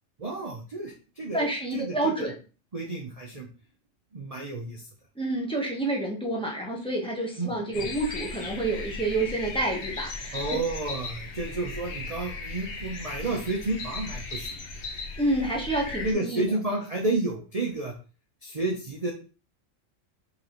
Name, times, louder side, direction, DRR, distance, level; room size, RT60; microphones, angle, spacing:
voice 1, 0.2-1.5 1.7-2.3 2.7-3.5 4.1-4.8 7.4-7.9 10.3-14.6 16.0-17.9 18.4-19.1, right 2 dB, 35° right, -1 dB, 0.7 m, -31 dB
voice 2, 1.3-2.3 5.2-10.6 15.2-16.4, right 2 dB, 5° left, -2 dB, 0.9 m, -28 dB
sound 1, 7.7-16.1, left 3 dB, 60° left, 1.1 m, -37 dB
5.2 x 3.2 x 3.0 m, 0.35 s
omnidirectional pair, 1.3 m